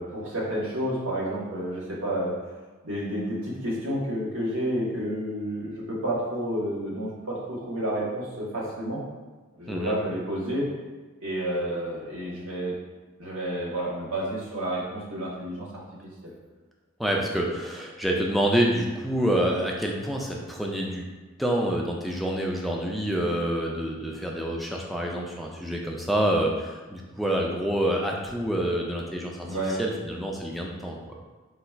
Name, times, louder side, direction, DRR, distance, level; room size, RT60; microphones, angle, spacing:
voice 1, 0.0-2.3 2.8-9.0 9.6-10.6 11.2-12.7 13.2-15.8 16.2-16.3 29.5-29.8, right 1 dB, 70° right, -5 dB, 1.2 m, -30 dB
voice 2, 17.0-21.0 21.4-29.5 29.8-31.0, right 1 dB, ahead, -1 dB, 0.3 m, -27 dB
3.8 x 2.3 x 4.4 m, 1.3 s
head